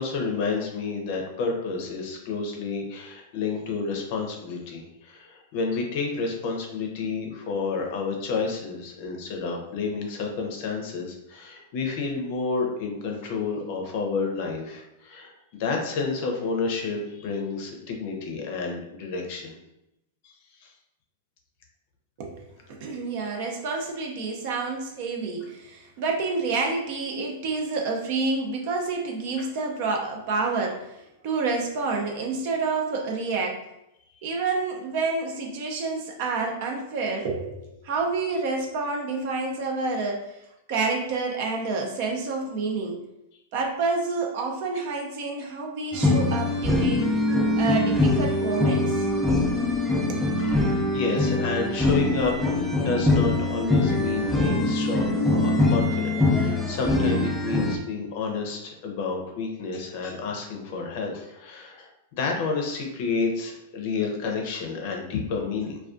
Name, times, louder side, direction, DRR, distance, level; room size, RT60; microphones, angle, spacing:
voice 1, 0.0-19.6 20.2-20.3 20.6-20.7 29.4-29.5 50.5-52.3 52.7-65.8, left 4 dB, 55° left, 2 dB, 0.5 m, -30 dB
voice 2, 22.2-33.6 34.2-40.3 40.7-43.0 43.5-47.1 47.6-49.1 50.1-50.2, right 3 dB, 55° right, 1 dB, 0.5 m, -28 dB
sound 1, 45.9-57.8, left 2 dB, ahead, 0.3 m, -23 dB
2.3 x 2.2 x 2.5 m, 0.86 s
hypercardioid pair, 130°, 0 cm